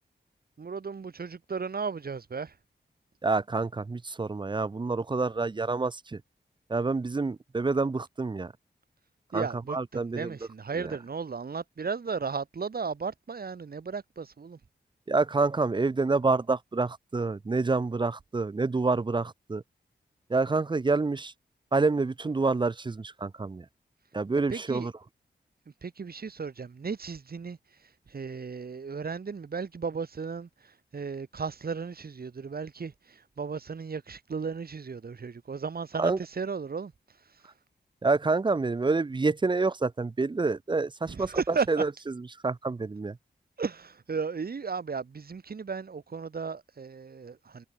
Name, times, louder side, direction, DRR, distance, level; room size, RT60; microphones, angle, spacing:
voice 1, 0.6-2.6 9.3-14.6 24.5-24.9 25.7-37.5 41.1-41.8 43.6-47.7, right 5 dB, 60° right, 3.8 m, -35 dB
voice 2, 3.2-6.2 6.7-8.5 9.3-10.3 15.1-19.6 20.3-21.3 21.7-23.6 24.1-24.9 36.0-36.2 38.0-41.4 41.7-41.9 42.4-43.2, right 3 dB, 25° right, 0.6 m, -27 dB
wide cardioid pair, 100°, 18 cm